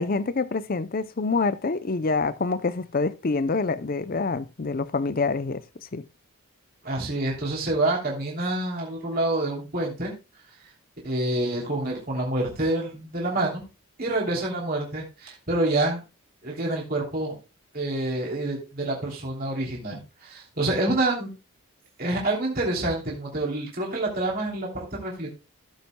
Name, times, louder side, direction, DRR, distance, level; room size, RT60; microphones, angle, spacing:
voice 1, 0.0-5.6 5.9-6.0, left 4 dB, 40° left, 0.5 m, -26 dB
voice 2, 6.8-10.1 11.0-13.6 14.0-16.0 16.4-17.4 17.7-21.3 22.0-25.3, right 2 dB, 40° right, 3.0 m, -27 dB
16.0 x 7.5 x 2.2 m
head